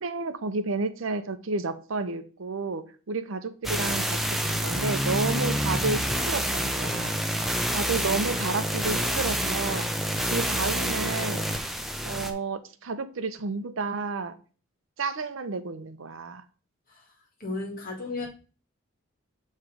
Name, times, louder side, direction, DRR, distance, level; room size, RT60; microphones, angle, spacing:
voice 1, 0.0-9.9 10.3-11.5 12.0-14.3 15.0-16.4, right 3 dB, 70° right, 11 dB, 0.6 m, -31 dB
sound 1, 3.6-12.3, equal, ahead, 0.5 m, -28 dB
voice 2, 17.4-18.3, left 3 dB, 40° left, 1 dB, 2.0 m, -34 dB
7.4 x 3.2 x 4.8 m, 0.37 s
head